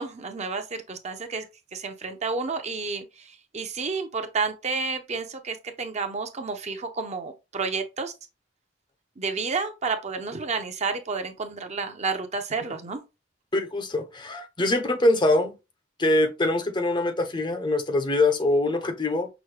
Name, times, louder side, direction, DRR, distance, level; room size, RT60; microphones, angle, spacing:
voice 1, 0.0-1.4 1.7-3.0 3.5-8.1 9.2-13.0, right 4 dB, 35° right, 0.6 m, -30 dB
voice 2, 13.5-15.5 16.0-19.3, left 2 dB, 25° left, 0.6 m, -23 dB
6.0 x 2.2 x 3.2 m
head